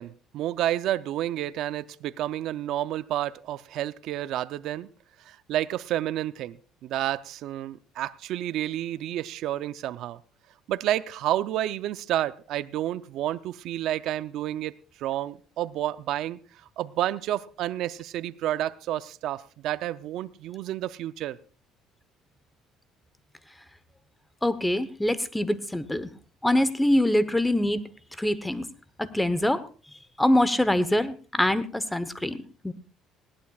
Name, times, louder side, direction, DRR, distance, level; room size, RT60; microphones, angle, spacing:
voice 1, 0.0-4.9 5.3-6.6 6.8-10.2 10.7-14.7 15.0-16.4 16.8-21.4, right 13 dB, 65° right, 14 dB, 0.5 m, -30 dB
voice 2, 24.4-26.1 26.4-27.8 28.2-28.6 29.0-29.6 30.2-32.4 32.6-32.7, left 1 dB, 5° left, 13 dB, 0.9 m, -24 dB
20.0 x 17.5 x 2.4 m, 0.39 s
cardioid pair, 120°, 0 cm